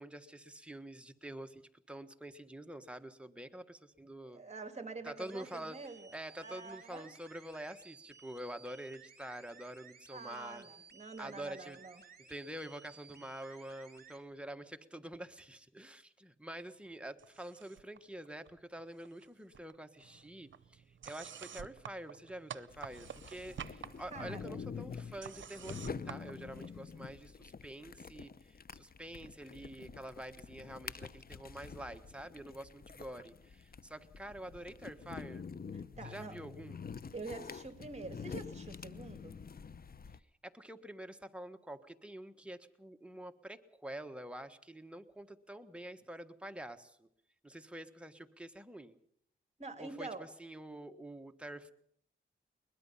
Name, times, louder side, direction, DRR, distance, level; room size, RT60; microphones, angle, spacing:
voice 1, 0.0-1.6 1.9-4.4 5.0-5.8 6.1-10.7 11.2-11.8 12.2-35.4 36.0-36.8 40.4-47.1 47.4-48.9 49.8-51.7, right 1 dB, 5° right, 6 dB, 1.5 m, -47 dB
voice 2, 4.2-7.1 10.1-12.0 24.1-24.6 35.7-36.4 37.1-39.4 49.6-50.3, right 3 dB, 35° right, 8 dB, 2.4 m, -46 dB
sound 1, 5.2-14.2, right 5 dB, 50° right, 3.2 m, -58 dB
sound 2, 17.2-18.0 18.2-19.3 19.5-27.1, right 8 dB, 70° right, 0.7 m, -50 dB
sound 3, 22.7-40.2, left 6 dB, 50° left, 0.8 m, -47 dB
22.0 x 20.5 x 5.7 m, 0.69 s
cardioid pair, 70°, 20 cm